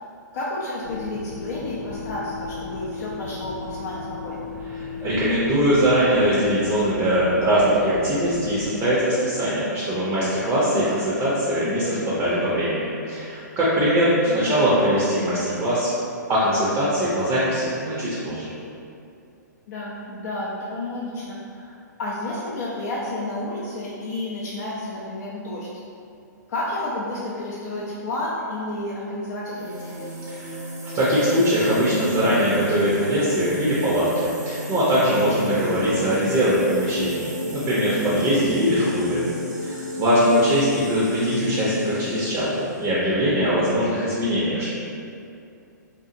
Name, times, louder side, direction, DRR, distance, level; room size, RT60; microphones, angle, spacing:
voice 1, 0.3-4.5 10.7-11.0 14.4-14.6 19.7-25.7 26.5-30.0 38.4-38.7, left 2 dB, 60° left, -6 dB, 0.4 m, -31 dB
sound 1, 0.8-8.8, left 4 dB, 90° left, 0.7 m, -35 dB
voice 2, 4.8-15.9 16.3-18.5 30.3-30.6 30.9-39.3 39.6-44.7, equal, 20° right, -8 dB, 0.5 m, -21 dB
sound 2, 29.5-42.9, left 1 dB, 75° right, 0.8 m, -33 dB
2.7 x 2.3 x 2.5 m, 2.5 s
hypercardioid pair, 135°, 10 cm